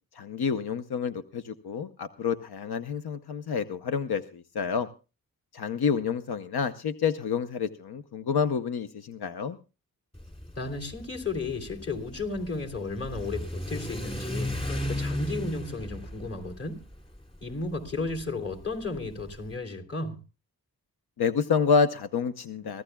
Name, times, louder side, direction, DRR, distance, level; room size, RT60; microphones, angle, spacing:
voice 1, 0.2-4.9 5.5-9.6 21.2-22.8, left 6 dB, 85° left, 10 dB, 0.8 m, -28 dB
Car / Accelerating revving vroom, 10.1-19.6, left 1 dB, 15° left, 2.8 m, -36 dB
voice 2, 10.5-16.8 17.4-20.2, left 3 dB, 40° left, 3 dB, 3.2 m, -34 dB
24.5 x 15.5 x 2.3 m, 0.32 s
wide cardioid pair, 95°, 37 cm